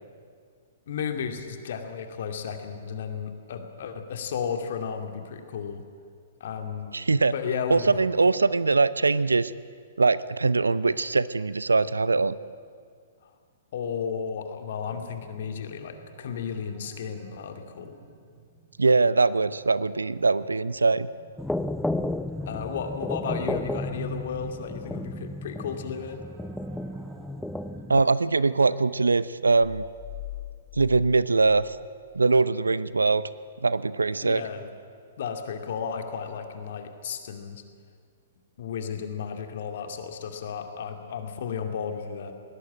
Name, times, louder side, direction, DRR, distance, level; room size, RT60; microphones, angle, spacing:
voice 1, 0.9-5.8 6.4-6.9 7.3-8.0 13.7-17.9 22.5-26.2 34.2-34.7 35.2-37.6 38.6-42.3, left 6 dB, 55° left, 6 dB, 2.5 m, -33 dB
voice 2, 6.9-7.3 7.7-9.5 10.0-12.4 18.8-21.1 27.9-29.8 30.7-31.8 32.1-33.3 33.6-34.4, right 3 dB, 80° right, 17 dB, 0.7 m, -22 dB
sound 1, 14.8-29.6, right 4 dB, 40° right, 2.7 m, -54 dB
sound 2, 21.4-28.0, left 1 dB, 5° left, 0.6 m, -33 dB
sound 3, 29.6-32.5, left 15 dB, 35° left, 1.0 m, -42 dB
21.0 x 18.0 x 8.7 m, 2.1 s
figure-of-eight pair, 115°, 0 cm